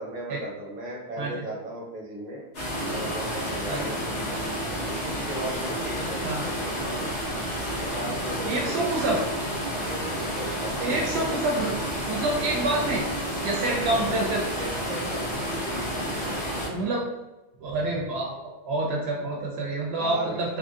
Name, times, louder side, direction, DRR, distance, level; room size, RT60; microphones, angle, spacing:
voice 1, 0.0-2.5 2.9-4.5 5.0-7.1 7.8-8.9 9.6-11.2 12.6-12.9 13.6-14.1 14.6-16.4 20.0-20.4, right 1 dB, 45° right, -3 dB, 1.0 m, -37 dB
sound 1, 2.5-16.7, equal, 75° left, 1.2 m, -30 dB
voice 2, 8.4-9.2 10.8-11.8 12.1-13.0 13.4-14.5 16.5-17.1 17.6-20.6, right 2 dB, 80° right, -2 dB, 0.8 m, -27 dB
2.9 x 2.6 x 2.4 m, 1.0 s
omnidirectional pair, 1.0 m